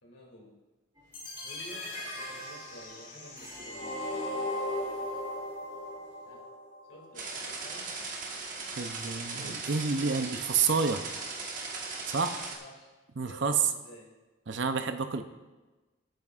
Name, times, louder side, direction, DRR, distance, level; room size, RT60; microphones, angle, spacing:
voice 1, 0.0-0.5 1.4-4.1 5.0-5.2 6.3-6.4 6.9-7.9 12.6-12.9 13.2-14.1, equal, 75° left, -2 dB, 2.6 m, -51 dB
sound 1, 0.9-6.3, right 1 dB, 20° right, 2.4 m, -54 dB
sound 2, 1.1-7.1, left 1 dB, 40° left, 2.5 m, -37 dB
sound 3, 7.1-12.6, right 4 dB, 40° right, 1.3 m, -38 dB
voice 2, 8.8-11.0 12.1-12.4 13.2-13.6 14.5-15.2, right 5 dB, 65° right, 8 dB, 0.6 m, -29 dB
18.0 x 9.2 x 2.5 m, 1.2 s
head